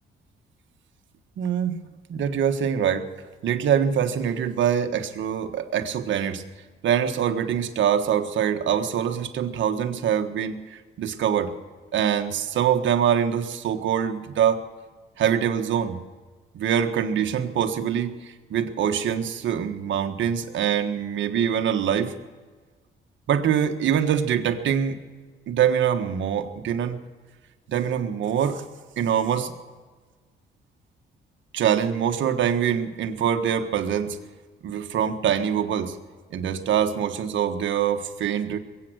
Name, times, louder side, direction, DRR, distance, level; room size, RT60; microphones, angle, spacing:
voice 1, 1.4-1.8 2.1-3.1 3.4-6.4 6.8-11.5 11.9-14.6 15.2-16.0 16.5-22.1 23.3-25.0 25.5-27.0 27.7-28.6 29.0-29.5 31.5-34.2 34.6-36.0 36.3-38.6, right 8 dB, 70° right, 7 dB, 1.5 m, -24 dB
22.0 x 9.2 x 6.3 m, 1.4 s
cardioid pair, 90°, 20 cm